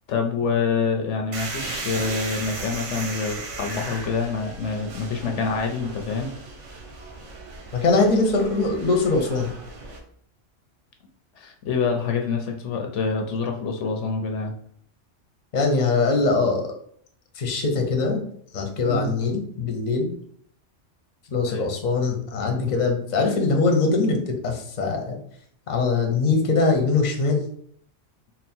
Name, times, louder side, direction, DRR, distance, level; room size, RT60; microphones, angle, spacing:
voice 1, 0.1-6.3 11.4-14.5 18.9-19.1 21.5-21.7, left 5 dB, 75° left, 3 dB, 0.9 m, -26 dB
sound 1, 1.3-10.0, right 3 dB, 70° right, 1.2 m, -36 dB
voice 2, 7.7-9.5 15.5-16.7 17.3-18.2 18.5-20.1 21.3-25.2 25.7-27.4, left 3 dB, 40° left, 3 dB, 0.8 m, -22 dB
4.0 x 2.1 x 4.3 m, 0.64 s
omnidirectional pair, 1.3 m